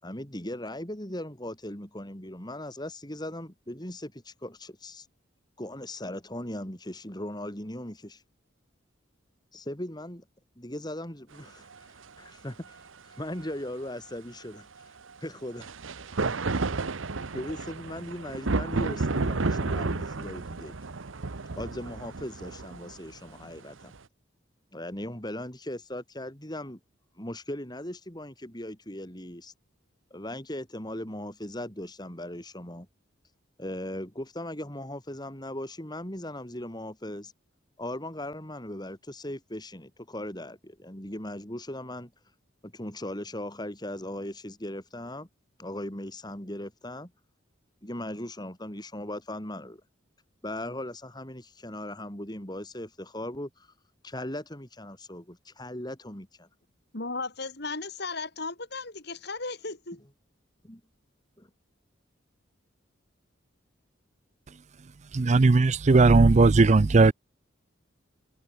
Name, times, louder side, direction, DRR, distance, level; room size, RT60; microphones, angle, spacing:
voice 1, 0.0-5.0 5.6-8.2 9.5-10.2 10.6-11.7 12.2-12.8 13.0-14.7 15.2-15.7 16.2-16.6 17.3-20.7 21.5-23.9 24.7-26.8 27.2-29.5 30.1-32.9 33.6-37.3 37.8-42.1 42.6-45.3 45.6-47.1 47.8-49.8 50.4-53.7 54.0-56.5 60.7-60.8 61.4-61.5, left 1 dB, 20° left, 4.9 m, -38 dB
sound 1, 11.7-11.8 15.6-23.9, right 3 dB, 80° right, 1.0 m, -31 dB
voice 2, 56.9-60.0, left 3 dB, 55° left, 4.1 m, -35 dB
voice 3, 65.1-67.1, right 3 dB, 35° right, 0.5 m, -18 dB
open air
head